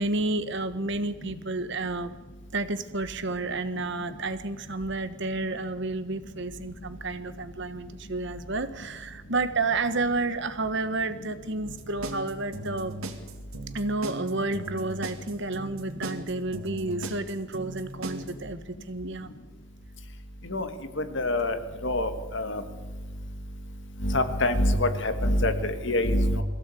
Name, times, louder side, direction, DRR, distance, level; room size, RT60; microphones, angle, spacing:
voice 1, 0.0-2.1 2.5-12.9 13.7-19.3, right 3 dB, 55° right, 11 dB, 1.3 m, -30 dB
sound 1, 11.6-18.3, right 1 dB, 85° right, 2.5 m, -37 dB
voice 2, 21.0-21.6 21.8-22.6 24.0-26.4, left 1 dB, 60° left, 9 dB, 1.8 m, -25 dB
22.5 x 16.0 x 8.5 m, 1.3 s
head